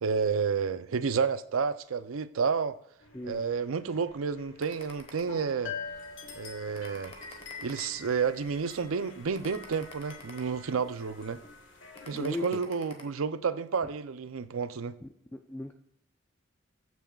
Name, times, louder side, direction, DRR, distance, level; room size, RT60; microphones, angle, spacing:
voice 1, 0.0-2.8 3.2-5.7 6.4-7.1 7.6-11.4 12.1-15.0, right 5 dB, 85° right, 0.5 m, -30 dB
sound 1, 3.0-12.5, left 5 dB, 65° left, 1.6 m, -46 dB
sound 2, 4.6-5.8 6.2-6.4 6.7-8.4 8.8-9.0 9.3-11.0 11.4-11.6 12.0-13.0, left 3 dB, 30° left, 1.2 m, -50 dB
voice 2, 12.1-12.6 15.0-15.7, left 2 dB, 10° left, 0.3 m, -37 dB
15.0 x 6.2 x 2.4 m
head